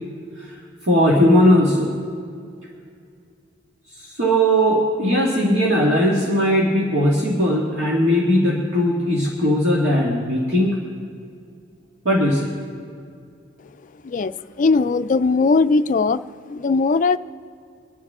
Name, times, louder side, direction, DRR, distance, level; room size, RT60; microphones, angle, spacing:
voice 1, 0.8-2.0 3.9-10.8 12.0-12.5, equal, 70° right, -4 dB, 1.9 m, -18 dB
voice 2, 14.6-16.2 16.5-17.2, left 4 dB, 45° left, 12 dB, 0.4 m, -18 dB
25.0 x 9.5 x 3.7 m, 2.4 s
head